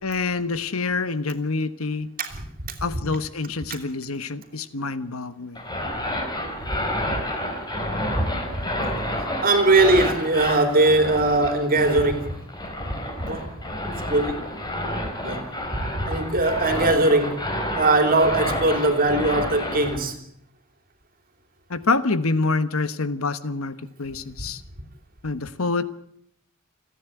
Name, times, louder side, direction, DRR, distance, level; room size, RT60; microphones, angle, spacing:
voice 1, 0.0-2.1 2.8-5.6 21.7-24.6 25.2-25.8, left 3 dB, 80° left, 1.3 m, -26 dB
voice 2, 2.2-2.7 6.7-7.1 8.2-8.3 9.4-12.4 12.9-13.5 14.1-14.4 15.2-15.5 15.7-17.4 17.8-20.2, right 2 dB, 45° right, 3.2 m, -21 dB
sound 1, 5.5-20.0, left 1 dB, 20° left, 4.1 m, -30 dB
29.0 x 10.0 x 9.1 m
head